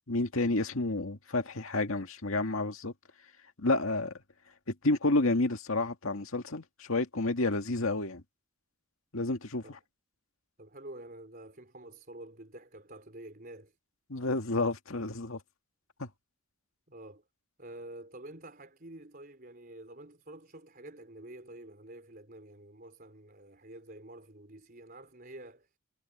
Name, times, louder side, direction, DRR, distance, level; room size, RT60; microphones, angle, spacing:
voice 1, 0.1-2.9 3.6-4.1 4.7-8.2 9.1-9.8 14.1-15.4 16.0-16.1, left 2 dB, 70° left, 2.0 m, -30 dB
voice 2, 10.6-13.8 16.9-17.2 17.6-25.8, right 1 dB, 40° right, 4.3 m, -48 dB
head